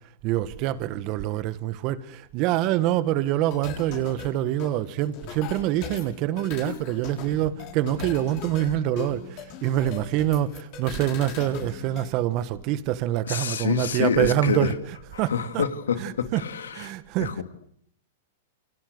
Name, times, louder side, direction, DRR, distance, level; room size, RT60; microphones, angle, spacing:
voice 1, 0.2-14.7 15.2-15.6 16.0-16.4 16.7-17.4, right 13 dB, 45° right, 1.9 m, -26 dB
sound 1, 3.5-12.1, left 9 dB, 50° left, 6.9 m, -39 dB
voice 2, 13.3-14.7 15.3-16.7 17.2-17.4, left 7 dB, 90° left, 2.6 m, -27 dB
29.0 x 25.5 x 8.1 m
hypercardioid pair, 125°, 0 cm